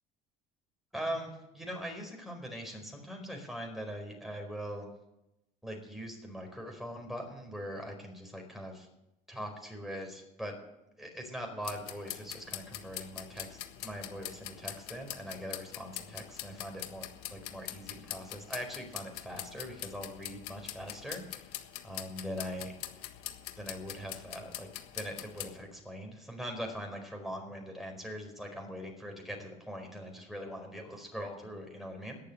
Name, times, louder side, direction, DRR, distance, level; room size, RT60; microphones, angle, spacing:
voice 1, 0.9-4.9 5.6-8.9 9.3-10.5 11.0-22.7 23.6-24.7 24.9-32.2, equal, ahead, 2 dB, 4.7 m, -42 dB
sound 1, 11.6-25.6, left 14 dB, 80° left, 1.5 m, -44 dB
18.5 x 7.0 x 8.7 m, 0.90 s
supercardioid pair, 95°, 18 cm